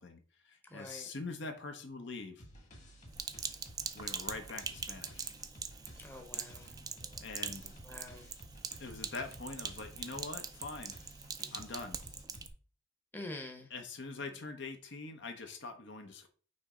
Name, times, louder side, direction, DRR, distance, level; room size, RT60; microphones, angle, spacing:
voice 1, 0.0-2.4 3.9-5.3 7.2-7.7 8.8-11.0 11.5-12.0 13.7-16.3, left 3 dB, 60° left, 6 dB, 0.8 m, -44 dB
voice 2, 0.7-1.1 6.0-6.7 7.8-8.3 13.1-13.7, left 2 dB, 10° left, 3 dB, 0.8 m, -46 dB
sound 1, 2.4-12.5, equal, 35° left, 1.7 m, -54 dB
Sink (filling or washing), 3.1-12.5, right 6 dB, 20° right, 0.4 m, -43 dB
6.2 x 3.1 x 4.9 m, 0.40 s
head